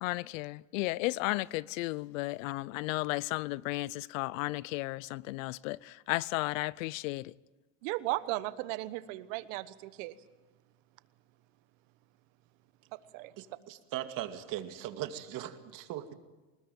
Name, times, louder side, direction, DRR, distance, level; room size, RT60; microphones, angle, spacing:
voice 1, 0.0-7.3, left 20 dB, 90° left, 0.7 m, -34 dB
voice 2, 7.8-10.2 12.9-13.3, right 18 dB, 80° right, 1.2 m, -36 dB
voice 3, 13.4-16.1, right 12 dB, 60° right, 2.4 m, -39 dB
24.0 x 20.0 x 9.2 m
supercardioid pair, 115°, 38 cm